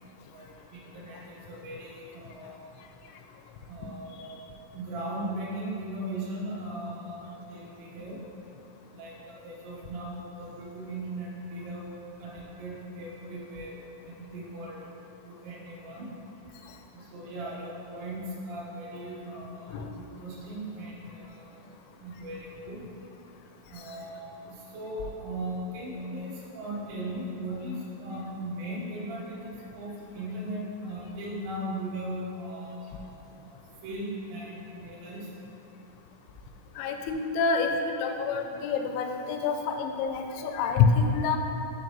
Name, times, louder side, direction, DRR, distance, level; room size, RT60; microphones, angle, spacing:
voice 1, 0.3-2.6 3.7-4.3 4.7-8.2 8.9-11.9 12.2-13.8 14.0-14.9 15.2-16.1 16.9-19.8 20.2-22.8 23.7-33.1 33.4-35.3, right 1 dB, 75° right, -6 dB, 1.9 m, -38 dB
voice 2, 36.8-41.4, left 5 dB, 85° left, 4 dB, 2.8 m, -27 dB
7.0 x 3.9 x 5.2 m, 2.8 s
omnidirectional pair, 5.6 m